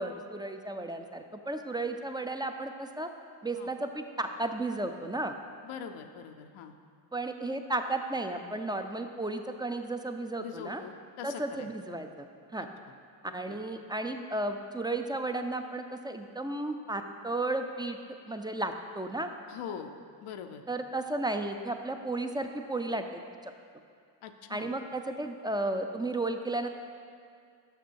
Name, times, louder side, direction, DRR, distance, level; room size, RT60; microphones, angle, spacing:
voice 1, 0.0-3.1 3.4-5.3 7.1-10.8 11.2-12.3 12.5-12.7 13.3-18.0 18.3-19.3 20.7-23.5 24.5-26.7, right 2 dB, 10° right, 6 dB, 0.5 m, -34 dB
voice 2, 5.6-6.7 10.4-11.7 13.5-13.6 19.5-19.9 20.2-20.6 24.2-24.7, left 7 dB, 80° left, 6 dB, 0.6 m, -42 dB
6.8 x 6.0 x 4.6 m, 2.2 s
supercardioid pair, 50°, 49 cm